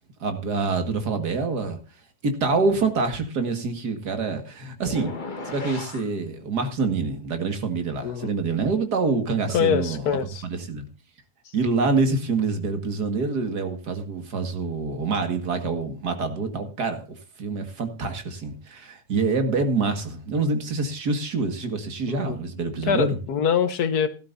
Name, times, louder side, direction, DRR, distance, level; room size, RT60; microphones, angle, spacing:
voice 1, 0.2-1.8 2.2-5.1 5.4-10.8 11.5-17.1 17.4-23.2, right 4 dB, 85° right, 2.5 m, -26 dB
sound 1, 4.8-6.1, left 3 dB, 30° left, 1.7 m, -35 dB
voice 2, 9.5-10.4 22.1-22.4 22.9-24.1, left 7 dB, 75° left, 1.6 m, -24 dB
17.0 x 12.0 x 2.6 m
omnidirectional pair, 1.7 m